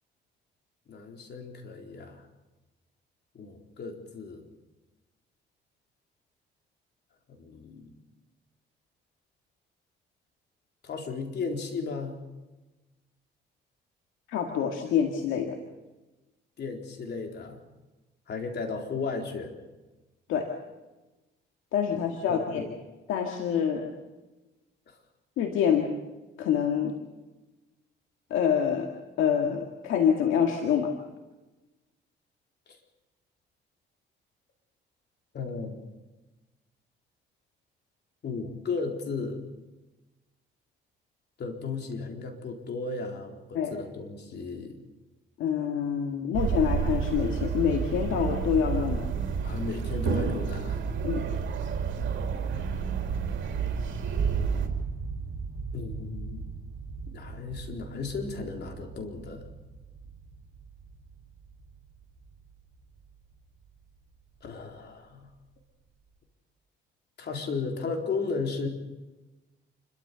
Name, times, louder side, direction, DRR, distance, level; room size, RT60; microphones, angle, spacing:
voice 1, 0.9-2.2 3.3-4.4 7.3-7.9 10.8-12.2 16.6-17.6 18.3-19.5 21.9-22.0 22.3-22.7 24.9-25.0 35.3-35.9 38.2-39.4 41.4-44.7 49.4-50.8 55.7-56.5 57.1-59.5 64.4-65.3 67.2-68.7, left 4 dB, 60° left, 3 dB, 4.0 m, -35 dB
voice 2, 14.3-15.6 20.3-20.6 21.7-22.7 23.1-23.9 25.4-25.9 26.4-26.9 28.3-28.9 29.2-30.9 43.5-43.7 45.4-49.1 51.0-51.3, left 8 dB, 90° left, 3 dB, 2.0 m, -26 dB
sound 1, 46.3-54.7, right 6 dB, 70° right, 3.1 m, -30 dB
sound 2, 54.2-64.2, right 5 dB, 35° right, 7.4 m, -37 dB
28.5 x 13.5 x 6.9 m, 1.1 s
cardioid pair, 90°, 20 cm